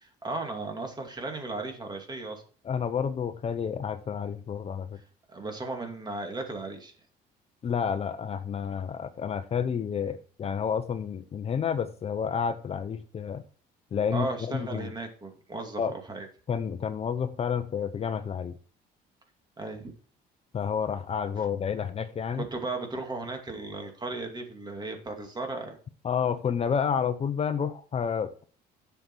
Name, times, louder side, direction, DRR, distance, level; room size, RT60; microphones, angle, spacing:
voice 1, 0.0-2.4 5.0-6.9 14.1-16.3 19.6-19.9 21.4-21.5 22.3-25.8, right 3 dB, 25° right, 2.5 m, -36 dB
voice 2, 2.6-4.9 7.6-13.4 13.9-14.9 15.8-15.9 16.5-18.6 20.5-22.5 26.0-28.4, left 7 dB, 35° left, 0.8 m, -30 dB
9.9 x 6.9 x 4.7 m
cardioid pair, 110°, 17 cm